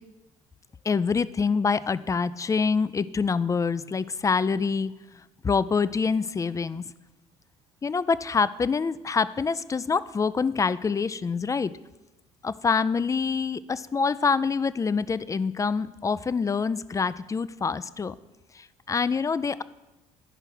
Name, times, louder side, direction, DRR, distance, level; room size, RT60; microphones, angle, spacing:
voice 1, 0.8-4.9 5.4-6.8 7.8-11.7 12.4-18.2 18.5-19.6, left 5 dB, 20° left, 16 dB, 0.4 m, -26 dB
10.0 x 5.5 x 6.1 m, 1.0 s
hypercardioid pair, 60°, 17 cm